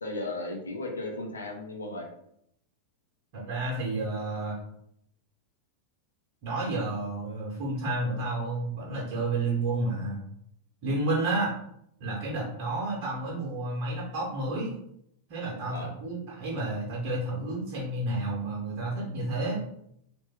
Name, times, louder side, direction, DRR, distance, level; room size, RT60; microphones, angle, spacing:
voice 1, 0.0-2.1 15.7-15.9, left 2 dB, 75° left, 1 dB, 0.7 m, -35 dB
voice 2, 3.3-4.6 6.4-10.2 10.8-11.5 12.0-14.7 15.3-19.6, right 2 dB, 50° right, -4 dB, 1.0 m, -31 dB
3.2 x 2.5 x 3.5 m, 0.73 s
figure-of-eight pair, 90°, 0 cm